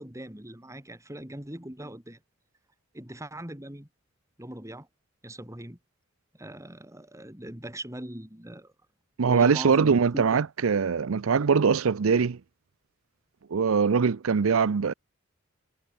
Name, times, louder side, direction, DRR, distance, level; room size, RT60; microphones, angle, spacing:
voice 1, 0.0-2.2 2.9-3.9 4.4-4.9 5.2-5.8 6.3-8.7 9.2-10.5, right 1 dB, 15° right, 3.6 m, -40 dB
voice 2, 9.2-12.4 13.5-14.9, right 5 dB, 90° right, 0.5 m, -22 dB
head